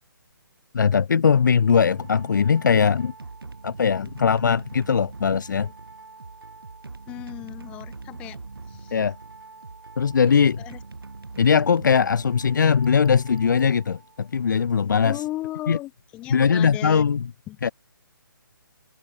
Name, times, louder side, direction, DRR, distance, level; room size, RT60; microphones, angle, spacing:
voice 1, 0.7-3.1 3.6-5.7 8.9-9.2 10.0-10.6 11.4-15.2 15.7-15.8 16.3-17.3 17.6-17.7, left 6 dB, 55° left, 0.6 m, -20 dB
sound 1, 1.3-14.3, right 3 dB, 80° right, 0.8 m, -42 dB
voice 2, 7.1-8.4 8.7-9.0 10.3-10.8 15.0-17.1 17.5-17.6, left 16 dB, 10° left, 0.3 m, -36 dB
figure-of-eight pair, 140°, 12 cm